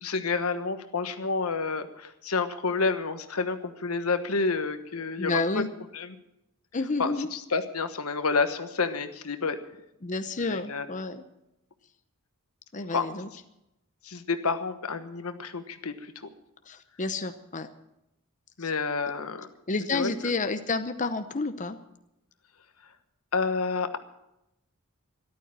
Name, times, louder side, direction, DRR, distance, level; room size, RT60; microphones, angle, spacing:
voice 1, 0.0-5.6 5.9-6.1 7.0-9.6 10.4-10.8 12.9-13.1 14.0-16.3 18.6-19.5 19.9-20.1 23.3-24.0, left 4 dB, 90° left, 9 dB, 1.3 m, -29 dB
voice 2, 5.2-5.7 6.7-7.3 10.0-11.2 12.7-13.3 16.7-17.7 18.6-18.7 19.7-21.8, left 3 dB, 35° left, 9 dB, 0.8 m, -30 dB
13.5 x 12.0 x 7.5 m, 0.87 s
head